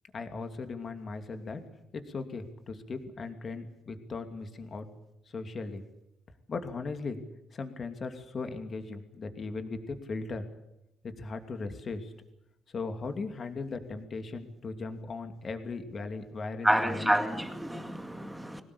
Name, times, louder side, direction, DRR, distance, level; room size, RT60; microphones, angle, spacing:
voice 1, 0.1-1.6 1.9-4.9 5.3-5.8 6.5-7.2 7.5-10.4 11.2-12.1 12.7-17.5, left 4 dB, 35° left, 2.7 m, -38 dB
voice 2, 16.6-18.6, right 1 dB, 5° right, 2.2 m, -28 dB
22.0 x 18.5 x 8.6 m
cardioid pair, 130°, 0 cm